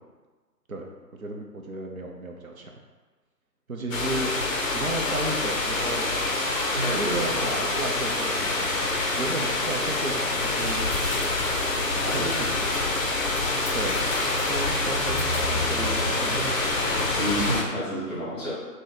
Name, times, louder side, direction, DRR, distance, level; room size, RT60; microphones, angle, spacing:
voice 1, 1.2-2.7 3.7-4.3 4.7-6.1 6.9-10.8 11.1-11.4 11.9-12.5 13.7-14.0 14.5-16.6, right 2 dB, 60° right, 1 dB, 0.6 m, -34 dB
sound 1, 3.9-17.6, left 2 dB, 55° left, 0.5 m, -26 dB
voice 2, 6.7-7.6 12.0-12.4 17.0-18.5, equal, 15° left, -9 dB, 1.1 m, -30 dB
2.9 x 2.1 x 3.8 m, 1.3 s
figure-of-eight pair, 155°, 49 cm